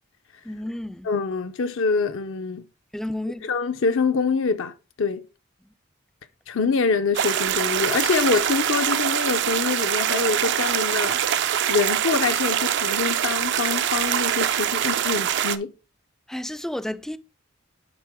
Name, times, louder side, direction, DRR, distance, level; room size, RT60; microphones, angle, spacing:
voice 1, 0.4-1.1 2.9-3.5 16.3-17.2, left 1 dB, ahead, 0.3 m, -31 dB
voice 2, 1.0-2.6 3.5-5.2 6.5-11.2 11.7-15.7, left 4 dB, 65° left, 0.6 m, -25 dB
sound 1, 7.1-15.6, right 9 dB, 60° right, 0.5 m, -24 dB
11.0 x 3.7 x 3.5 m
head